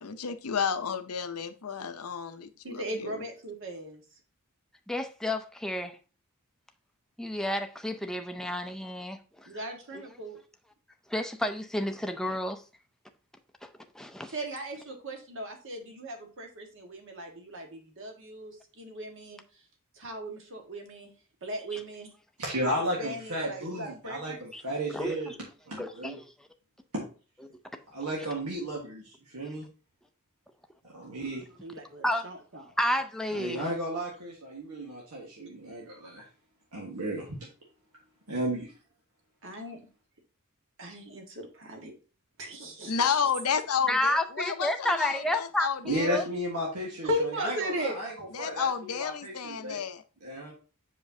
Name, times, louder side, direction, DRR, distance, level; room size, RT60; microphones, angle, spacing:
voice 1, 0.0-3.2 42.9-46.1 48.3-50.0, left 7 dB, 85° left, 0.7 m, -31 dB
voice 2, 2.6-4.0 9.5-10.4 14.3-19.4 19.9-21.1 21.4-22.1 23.0-24.4 31.6-32.7 39.4-39.9 40.8-41.9 42.4-42.9 47.0-48.0, equal, 60° right, 1.5 m, -37 dB
voice 3, 4.9-6.0 7.2-9.5 9.9-10.0 11.1-12.6 13.6-13.7 13.9-14.3 21.7-21.8 24.5-24.6 24.9-25.1 25.8-26.2 29.4-29.6 32.0-32.3 32.8-33.7 43.9-45.7 46.1-46.2, left 1 dB, ahead, 0.5 m, -30 dB
voice 4, 22.4-25.3 25.7-26.2 26.9-27.0 27.9-29.6 30.9-31.4 33.3-36.2 36.7-37.5 38.3-38.7 45.8-49.8 50.2-50.5, right 1 dB, 90° right, 1.5 m, -34 dB
7.4 x 5.0 x 2.7 m
head